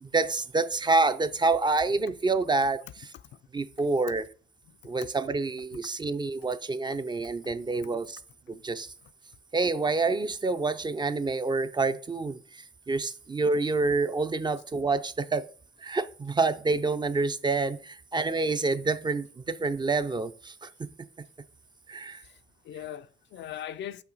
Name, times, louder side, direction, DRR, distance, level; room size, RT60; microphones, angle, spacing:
voice 1, 0.0-3.1 3.5-4.3 4.8-8.2 8.5-8.9 9.5-15.5 15.8-20.9 21.9-22.2, right 3 dB, 20° right, 0.4 m, -27 dB
voice 2, 22.1-24.0, left 10 dB, 65° left, 0.4 m, -40 dB
5.7 x 5.7 x 3.9 m
cardioid pair, 90°, 20 cm